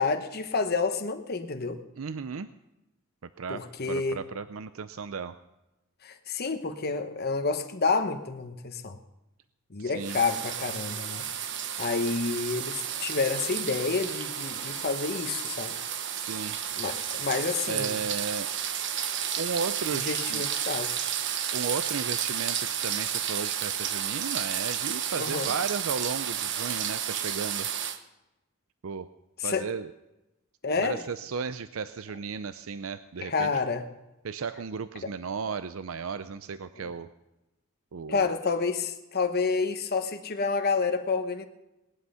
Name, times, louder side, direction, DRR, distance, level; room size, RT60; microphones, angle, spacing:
voice 1, 0.0-1.8 3.5-4.2 6.0-9.0 9.7-11.3 11.8-15.7 16.8-18.0 19.9-21.0 25.2-25.5 29.4-29.7 30.6-31.0 33.2-33.8 35.0-35.1 36.8-36.9 38.1-41.4, left 4 dB, 50° left, 6 dB, 1.0 m, -29 dB
voice 2, 2.0-2.5 3.4-5.3 9.8-10.2 16.1-17.0 17.7-18.5 19.4-20.5 21.5-27.7 28.8-29.1 29.4-29.9 30.8-33.5 34.2-37.1 37.9-38.3, right 5 dB, 85° right, 12 dB, 0.5 m, -35 dB
sound 1, 10.0-28.0, right 9 dB, 60° right, 1.1 m, -32 dB
19.0 x 11.5 x 5.6 m, 0.97 s
head